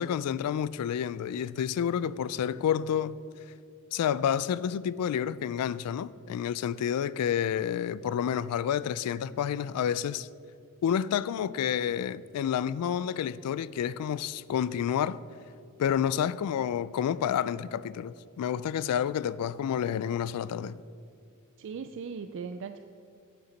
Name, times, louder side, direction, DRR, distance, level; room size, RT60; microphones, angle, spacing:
voice 1, 0.0-3.2 3.9-10.3 10.8-15.2 15.8-20.8, left 9 dB, 85° left, 0.3 m, -29 dB
voice 2, 21.6-22.8, right 5 dB, 55° right, 0.3 m, -38 dB
9.5 x 7.1 x 5.2 m
head